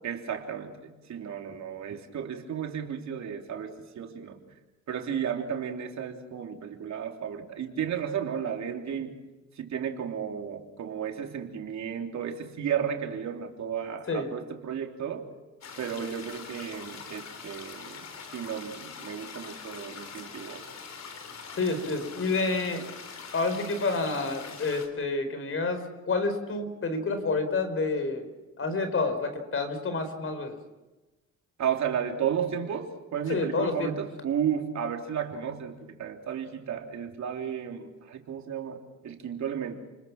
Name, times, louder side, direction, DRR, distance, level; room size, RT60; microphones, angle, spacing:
voice 1, 0.0-0.8 1.1-4.4 4.9-9.2 9.6-15.3 15.8-18.1 18.3-20.7 31.6-39.8, right 8 dB, 65° right, 2 dB, 3.5 m, -33 dB
sound 1, 15.6-24.9, left 5 dB, 60° left, 3.7 m, -43 dB
voice 2, 21.5-22.8 23.3-28.3 28.6-30.6 33.3-33.9, left 3 dB, 45° left, 8 dB, 4.7 m, -29 dB
29.5 x 21.0 x 6.0 m, 1.1 s
cardioid pair, 90°, 30 cm